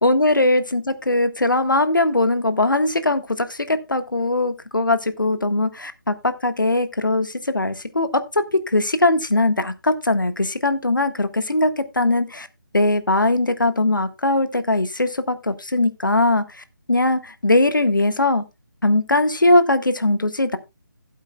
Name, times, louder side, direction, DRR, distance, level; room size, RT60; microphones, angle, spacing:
voice 1, 0.0-12.5 12.7-16.4 16.9-18.4 18.8-20.6, left 2 dB, 70° left, 1.5 m, -20 dB
16.0 x 8.3 x 2.3 m
figure-of-eight pair, 155°, 11 cm